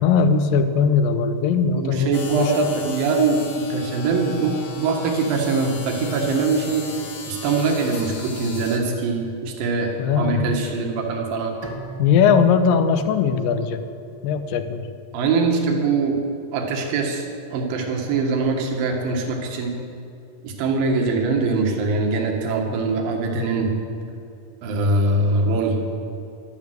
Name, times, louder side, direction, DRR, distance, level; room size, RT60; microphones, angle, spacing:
voice 1, 0.0-2.5 10.0-10.4 12.0-13.8 14.2-14.8 23.3-23.7, left 6 dB, 80° left, 9 dB, 2.6 m, -20 dB
voice 2, 1.8-6.9 7.3-11.6 15.1-16.2 16.5-19.8 20.4-23.7 24.6-25.8, right 3 dB, 80° right, 1 dB, 3.3 m, -22 dB
sound 1, 2.1-8.8, left 4 dB, 45° left, 2.1 m, -37 dB
Bowed string instrument, 11.6-14.8, right 4 dB, 30° right, 0.4 m, -38 dB
12.5 x 12.0 x 7.9 m, 2.8 s
omnidirectional pair, 4.1 m